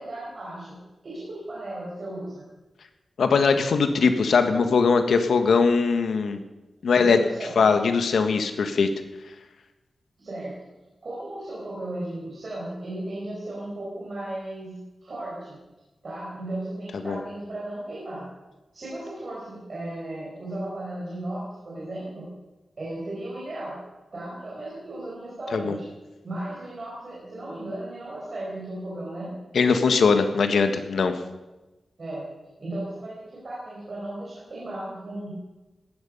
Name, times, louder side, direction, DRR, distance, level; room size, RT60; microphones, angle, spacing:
voice 1, 0.0-2.5 6.9-7.6 10.2-10.6 11.0-15.6 16.0-18.3 18.7-22.3 22.8-23.8 24.1-25.9 26.2-29.3 32.0-32.3 32.6-35.3, right 1 dB, 40° right, -6 dB, 5.1 m, -35 dB
voice 2, 3.2-6.4 6.8-7.2 7.6-8.9 17.0-17.2 25.5-25.8 29.5-31.1, left 5 dB, 80° left, 7 dB, 1.5 m, -21 dB
18.5 x 13.0 x 5.5 m, 1.1 s
wide cardioid pair, 180°, 0 cm